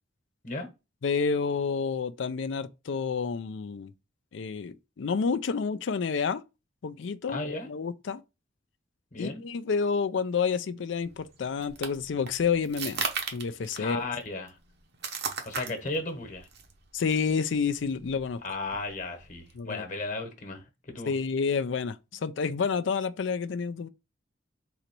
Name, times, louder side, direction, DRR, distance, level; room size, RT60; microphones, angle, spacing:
voice 1, 1.0-3.9 4.3-6.4 6.8-8.2 9.2-13.0 13.3-14.0 16.9-18.4 19.6-19.8 21.1-23.9, left 5 dB, 75° left, 0.4 m, -29 dB
voice 2, 7.3-7.7 9.1-9.4 13.8-14.6 15.4-16.5 18.4-21.1, left 2 dB, 45° left, 1.2 m, -35 dB
sound 1, 11.0-19.6, right 6 dB, 60° right, 0.8 m, -38 dB
4.0 x 3.0 x 4.5 m
head